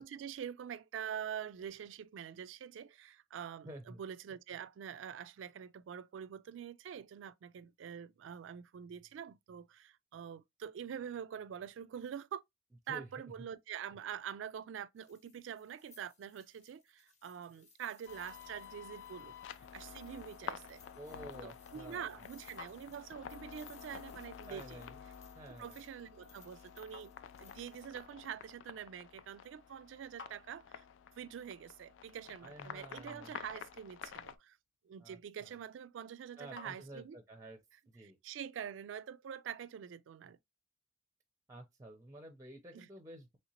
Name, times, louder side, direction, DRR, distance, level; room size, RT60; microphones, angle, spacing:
voice 1, 0.0-12.4 12.9-19.3 19.7-20.8 21.4-24.8 25.5-27.1 27.4-30.8 31.2-34.6 34.8-37.2 38.0-40.4 42.7-42.9, right 8 dB, 90° right, 0.3 m, -45 dB
voice 2, 3.6-4.0 12.9-13.1 21.0-22.3 24.5-25.0 25.3-25.8 32.4-33.3 35.0-35.5 36.4-37.6 37.9-38.2 41.5-43.4, right 1 dB, 15° right, 0.5 m, -51 dB
sound 1, 15.0-27.9, left 4 dB, 40° left, 0.7 m, -64 dB
sound 2, 18.1-34.4, left 8 dB, 90° left, 0.3 m, -50 dB
sound 3, 34.2-37.4, left 4 dB, 70° left, 0.8 m, -61 dB
3.2 x 2.8 x 2.8 m
head